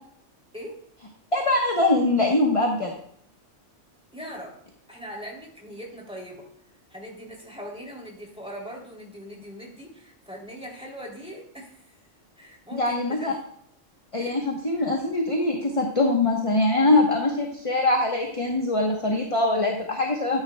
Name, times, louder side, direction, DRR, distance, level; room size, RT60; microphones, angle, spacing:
voice 1, 1.3-2.9 12.7-13.3 14.1-20.4, left 2 dB, 30° left, 0 dB, 1.2 m, -23 dB
voice 2, 4.1-4.6 4.9-6.4 6.9-12.0 12.4-13.3 14.1-14.4, equal, 5° right, -2 dB, 3.1 m, -40 dB
13.0 x 9.5 x 2.3 m, 0.67 s
omnidirectional pair, 1.3 m